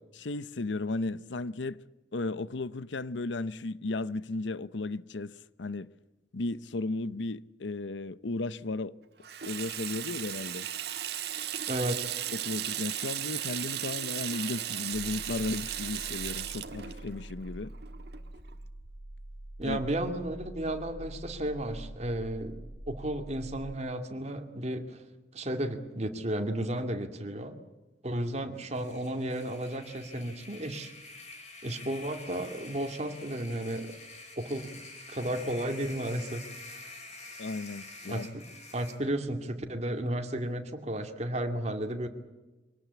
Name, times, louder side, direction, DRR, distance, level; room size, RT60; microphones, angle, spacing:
voice 1, 0.2-1.8 2.1-5.9 6.3-9.0 9.4-10.7 12.4-17.7 19.6-19.8 37.4-38.3, left 2 dB, 80° left, 0.8 m, -35 dB
Water tap faucet / Sink (filling or washing), 9.2-18.5, right 11 dB, 60° right, 1.6 m, -36 dB
voice 2, 11.7-12.1 19.6-22.6 22.9-25.0 25.3-27.6 28.0-30.9 31.6-33.9 34.4-34.7 35.1-36.4 36.7-36.8 38.1-38.4 38.7-42.1, right 1 dB, 35° right, 2.4 m, -33 dB
sound 1, 14.9-23.8, right 1 dB, ahead, 4.1 m, -45 dB
sound 2, 28.6-39.0, left 2 dB, 40° left, 5.7 m, -47 dB
24.5 x 18.0 x 8.3 m
head